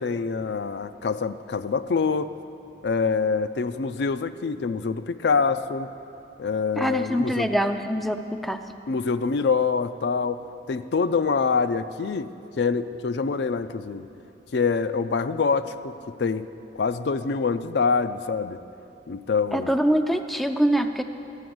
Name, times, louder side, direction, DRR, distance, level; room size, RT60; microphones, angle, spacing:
voice 1, 0.0-2.3 2.8-5.9 6.4-7.5 8.9-10.4 10.7-12.3 12.6-14.1 14.5-16.4 16.8-18.6 19.1-19.7, left 5 dB, 65° left, 11 dB, 0.4 m, -25 dB
voice 2, 6.8-8.6 19.5-21.0, equal, ahead, 7 dB, 0.4 m, -24 dB
13.0 x 8.0 x 7.7 m, 2.7 s
head